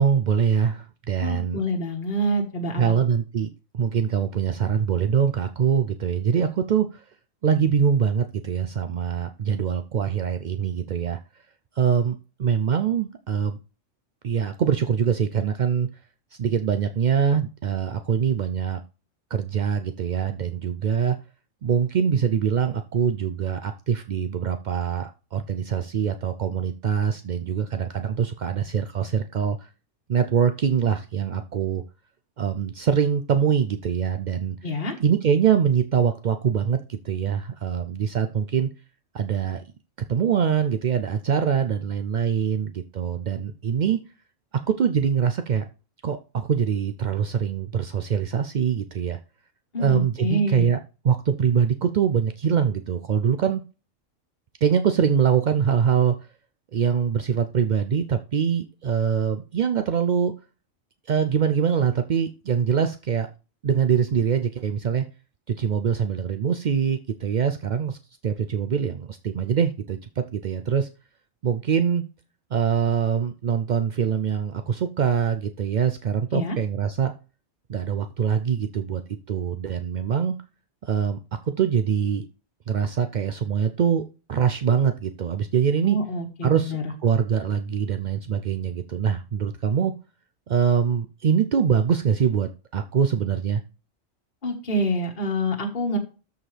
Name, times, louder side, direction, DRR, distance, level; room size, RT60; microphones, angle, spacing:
voice 1, 0.0-1.6 2.8-3.5 3.7-7.0 7.4-11.2 11.8-13.6 14.2-15.9 16.4-18.8 19.3-21.2 21.6-29.7 30.1-31.8 32.4-34.6 35.0-38.7 39.1-39.6 40.1-44.0 44.7-45.6 46.0-49.2 49.8-50.8 51.0-53.6 54.6-56.1 56.7-60.3 61.1-63.3 63.6-65.0 65.5-68.0 68.2-70.9 71.4-72.0 72.5-77.1 77.7-79.0 79.3-80.4 80.8-81.2 81.5-82.3 82.7-86.0 86.4-89.9 90.5-93.6, right 7 dB, 65° right, 8 dB, 0.4 m, -23 dB
voice 2, 1.2-2.8 34.6-34.9 49.7-50.7 76.3-76.6 85.8-86.8 94.4-96.0, equal, 40° left, 0 dB, 1.6 m, -26 dB
13.5 x 4.8 x 3.3 m, 0.33 s
omnidirectional pair, 1.4 m